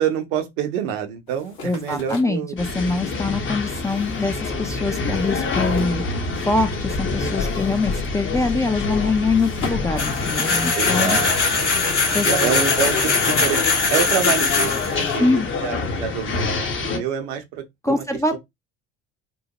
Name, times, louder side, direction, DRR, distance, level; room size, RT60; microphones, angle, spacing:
voice 1, 0.0-2.5 10.7-13.6 13.9-18.0 18.3-18.4, right 8 dB, 65° right, 0.7 m, -27 dB
sound 1, 1.3-6.7 7.0-10.9, left 3 dB, 60° left, 1.2 m, -40 dB
voice 2, 1.6-11.2 12.1-12.3 15.2-15.5 17.8-18.4, left 3 dB, 10° left, 0.4 m, -23 dB
sound 2, 2.6-17.0, left 4 dB, 35° left, 0.8 m, -26 dB
sound 3, 10.0-15.2, left 4 dB, 90° left, 0.7 m, -21 dB
2.9 x 2.1 x 2.8 m
figure-of-eight pair, 55°, 35 cm